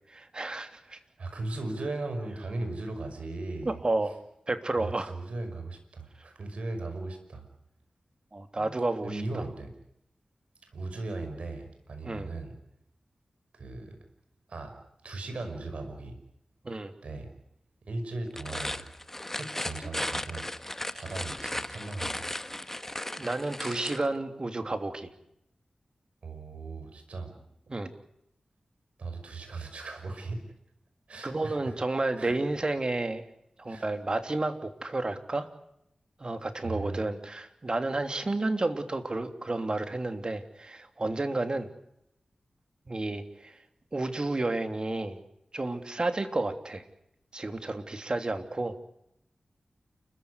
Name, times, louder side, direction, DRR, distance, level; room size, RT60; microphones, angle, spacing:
voice 1, 0.1-1.0 3.6-4.1 4.5-5.1 8.3-9.2 12.0-12.3 16.6-16.9 23.2-25.1 27.7-27.9 31.2-33.2 33.6-35.5 36.2-41.7 42.9-43.6 43.9-45.2 45.5-46.8 47.3-48.8, right 2 dB, 45° right, 8 dB, 3.1 m, -31 dB
voice 2, 0.9-3.8 4.7-7.4 8.6-8.8 9.0-9.7 10.7-12.5 13.5-14.0 14.5-14.7 15.0-16.2 17.0-17.3 17.9-18.8 19.3-20.5 20.9-22.4 26.2-27.4 29.0-30.4 31.1-31.8 32.2-32.3 33.7-33.9 36.6-37.1, right 2 dB, 80° right, 6 dB, 5.7 m, -37 dB
sound 1, 18.3-24.1, left 1 dB, 15° left, 1.4 m, -36 dB
29.0 x 15.0 x 9.7 m, 0.79 s
cardioid pair, 45°, 2 cm